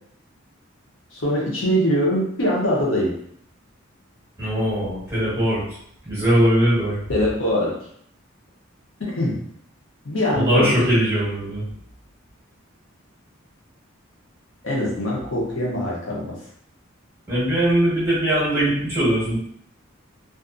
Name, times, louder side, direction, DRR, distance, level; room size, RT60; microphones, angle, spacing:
voice 1, 1.1-3.1 7.1-7.7 9.1-9.4 10.0-10.9 14.6-16.4, equal, 70° left, -4 dB, 0.8 m, -22 dB
voice 2, 4.4-5.8 6.0-7.0 10.3-11.6 17.3-19.4, right 1 dB, 15° right, -9 dB, 1.3 m, -20 dB
2.5 x 2.4 x 2.5 m, 0.67 s
head